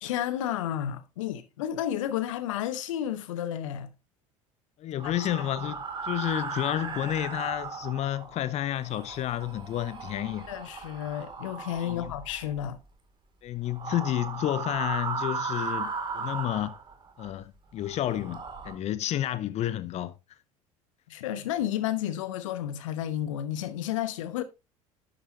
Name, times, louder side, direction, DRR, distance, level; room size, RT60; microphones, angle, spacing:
voice 1, 0.0-3.9 5.0-5.1 5.4-5.5 10.5-12.8 21.1-24.4, left 11 dB, 65° left, 1.0 m, -32 dB
voice 2, 4.8-10.5 11.8-12.1 13.4-16.7 17.2-20.1, left 12 dB, 40° left, 0.8 m, -31 dB
sound 1, 5.0-8.4 8.8-12.8 13.7-17.3 17.8-18.7, right 5 dB, 25° right, 2.4 m, -36 dB
11.5 x 8.2 x 2.7 m
figure-of-eight pair, 65°, 18 cm